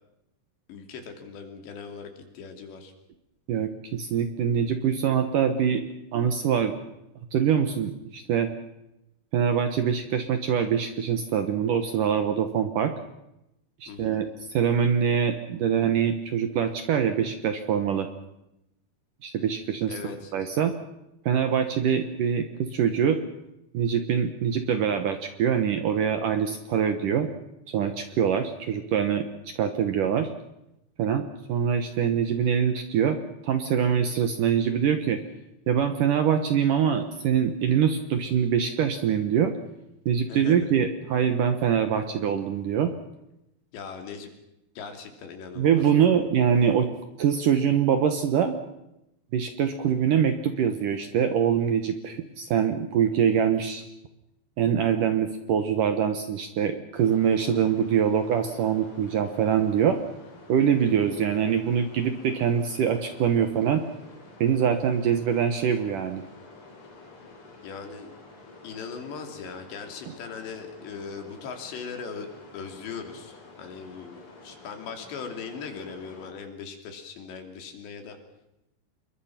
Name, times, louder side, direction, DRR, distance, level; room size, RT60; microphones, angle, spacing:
voice 1, 0.7-2.9 13.9-14.3 19.9-20.3 40.3-40.7 43.7-44.3 44.8-46.3 67.6-68.1 68.6-72.3 72.5-78.2, left 5 dB, 75° left, 5 dB, 5.0 m, -39 dB
voice 2, 3.5-5.8 6.1-6.8 7.3-8.5 9.3-12.9 13.8-18.1 19.2-19.9 20.3-20.7 21.3-23.2 23.7-27.3 27.7-30.3 31.0-33.2 33.4-35.2 35.7-39.5 40.1-42.9 45.6-46.9 47.2-48.6 49.3-53.8 54.6-60.0 60.5-63.8 64.4-66.2, right 8 dB, 65° right, 8 dB, 2.2 m, -24 dB
sound 1, 57.0-76.3, left 3 dB, 30° left, 4.6 m, -49 dB
27.5 x 22.5 x 5.9 m, 0.87 s
omnidirectional pair, 5.1 m